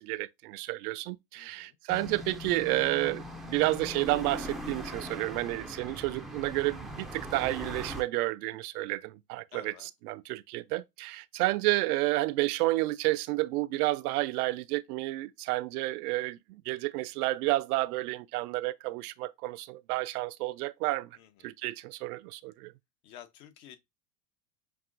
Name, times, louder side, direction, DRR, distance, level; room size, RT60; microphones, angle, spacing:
voice 1, 0.0-21.2 21.4-22.7, right 19 dB, 70° right, 0.5 m, -31 dB
voice 2, 1.3-1.8 9.5-9.9 21.1-21.5 23.0-23.8, left 10 dB, 65° left, 1.0 m, -51 dB
sound 1, 1.9-8.0, equal, ahead, 0.4 m, -40 dB
5.9 x 2.6 x 2.5 m
hypercardioid pair, 95°, 47 cm